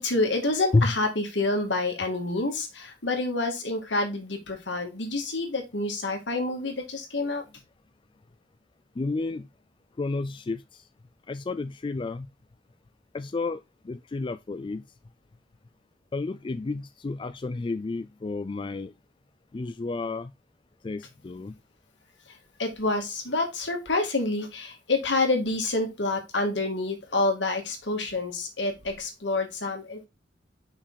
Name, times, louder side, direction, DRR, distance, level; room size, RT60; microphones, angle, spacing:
voice 1, 0.0-7.4 22.3-30.1, left 2 dB, 75° left, 2.3 m, -28 dB
voice 2, 9.0-9.5 10.0-10.6 11.3-12.3 13.1-14.8 16.1-18.9 19.5-20.3 20.8-21.5, left 3 dB, 25° left, 0.3 m, -30 dB
5.8 x 5.5 x 4.0 m
head